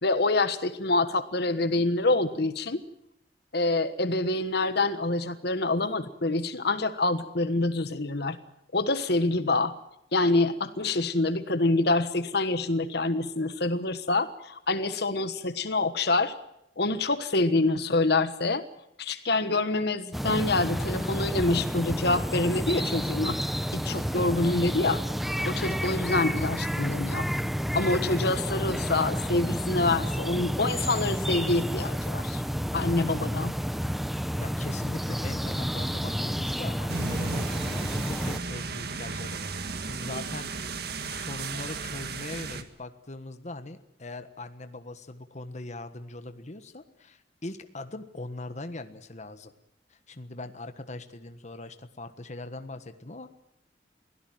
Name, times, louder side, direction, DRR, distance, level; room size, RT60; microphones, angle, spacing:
voice 1, 0.0-2.8 3.5-8.4 8.7-9.7 10.1-16.3 16.8-18.6 19.0-23.4 23.7-25.0 25.4-27.3 27.7-32.4 32.7-33.5, left 2 dB, 60° left, 11 dB, 1.4 m, -26 dB
sound 1, 20.1-38.4, equal, ahead, 0.8 m, -30 dB
voice 2, 34.4-37.5 37.8-40.5 40.8-49.5 49.9-53.3, left 2 dB, 40° left, 9 dB, 1.4 m, -40 dB
sound 2, 36.9-42.6, right 4 dB, 60° right, 1.8 m, -35 dB
23.0 x 17.0 x 9.1 m, 0.80 s
head